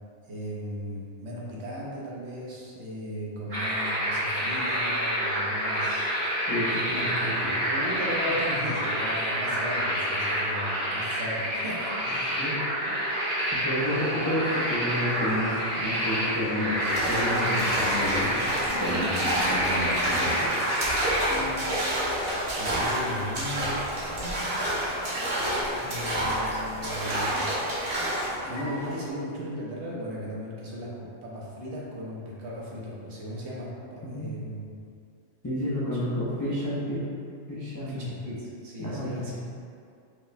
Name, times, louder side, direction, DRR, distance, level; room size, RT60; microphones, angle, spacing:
voice 1, 0.3-6.1 6.9-7.0 7.7-12.4 21.3-24.5 25.7-27.5 28.1-34.6 37.9-39.4, equal, 75° right, -5 dB, 1.0 m, -37 dB
sound 1, 3.5-21.3, equal, 90° right, 2.0 m, -28 dB
voice 2, 6.5-7.6 12.4-12.6 13.5-18.4 18.7-20.4 34.0-34.4 35.4-37.0 37.5-38.1 38.8-39.4, equal, 30° left, -10 dB, 0.3 m, -31 dB
sound 2, 13.8-29.1, equal, 80° left, 1.6 m, -39 dB
sound 3, 16.8-28.4, right 1 dB, 55° right, 0.9 m, -29 dB
4.8 x 2.1 x 2.5 m, 2.4 s
omnidirectional pair, 1.2 m